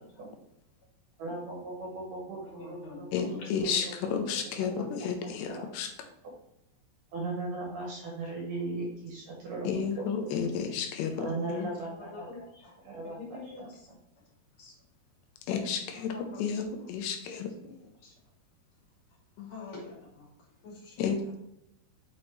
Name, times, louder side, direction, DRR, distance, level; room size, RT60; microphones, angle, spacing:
voice 1, 1.2-3.3 3.6-4.1 4.6-4.8 5.5-5.7 6.2-6.3 7.1-9.7 10.0-10.3 11.2-12.3 12.8-13.4, right 2 dB, 65° right, -1 dB, 2.3 m, -38 dB
voice 2, 2.4-3.5 4.2-4.5 11.6-12.7 13.0-13.9 14.6-14.7 15.9-16.6 17.2-17.4 17.6-18.1 19.4-20.3 20.6-21.1, left 3 dB, 35° left, -3 dB, 2.8 m, -47 dB
voice 3, 3.1-5.9 9.6-11.7 15.5-17.5 19.4-19.5 21.0-21.4, left 6 dB, 85° left, 5 dB, 3.0 m, -32 dB
6.3 x 6.1 x 3.2 m, 0.82 s
omnidirectional pair, 4.9 m